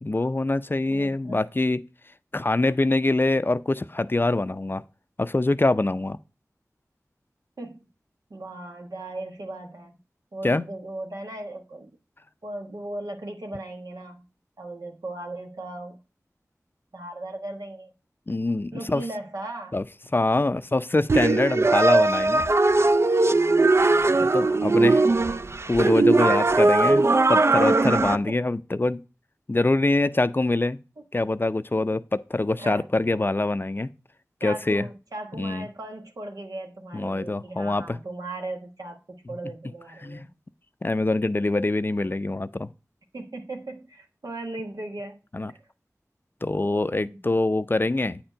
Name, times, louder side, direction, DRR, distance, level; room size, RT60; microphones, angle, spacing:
voice 1, 0.0-1.8 2.3-4.8 5.2-6.2 10.4-10.6 18.3-19.0 19.7-19.8 20.1-22.4 24.2-25.0 25.7-27.0 27.3-29.0 29.5-30.8 31.1-33.9 34.4-34.9 35.3-35.7 36.9-38.0 40.0-40.3 40.8-42.7 45.3-45.5 46.4-48.2, left 2 dB, 35° left, 0.4 m, -24 dB
voice 2, 0.9-1.4 7.6-7.9 8.3-9.9 10.3-11.9 12.4-14.2 14.6-16.0 16.9-17.9 18.7-19.8 23.2-25.6 26.2-27.2 27.8-28.4 31.0-31.1 32.6-32.9 34.4-40.3 43.1-45.2 45.5-45.6 46.5-47.2, right 2 dB, 85° right, 1.3 m, -38 dB
sound 1, 21.1-28.2, right 2 dB, 45° right, 0.4 m, -20 dB
8.6 x 4.4 x 5.0 m
wide cardioid pair, 45°, 6 cm